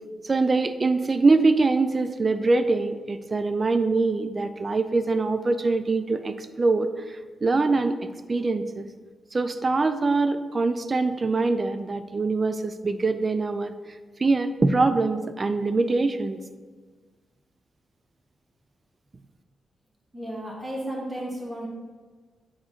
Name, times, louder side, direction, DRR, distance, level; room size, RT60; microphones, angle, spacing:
voice 1, 0.2-8.0 8.3-8.9 9.3-13.7 14.2-16.4, right 3 dB, 40° right, 10 dB, 0.5 m, -23 dB
voice 2, 20.1-21.7, right 1 dB, 20° right, -3 dB, 2.2 m, -33 dB
7.5 x 4.2 x 4.3 m, 1.4 s
supercardioid pair, 45°, 0 cm